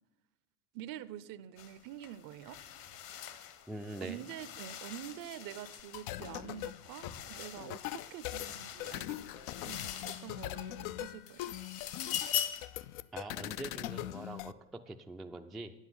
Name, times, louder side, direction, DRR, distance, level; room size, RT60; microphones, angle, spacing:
voice 1, 0.7-2.6 4.0-11.5, right 12 dB, 50° right, 16 dB, 0.6 m, -46 dB
sound 1, 1.6-1.7 2.0-10.7 11.1-12.8, left 10 dB, 55° left, 1.2 m, -42 dB
voice 2, 3.7-4.2 13.1-15.7, right 2 dB, ahead, 4 dB, 0.3 m, -43 dB
sound 2, 5.8-14.5, left 15 dB, 75° left, 0.5 m, -42 dB
9.2 x 8.2 x 5.5 m, 1.0 s
supercardioid pair, 100°, 42 cm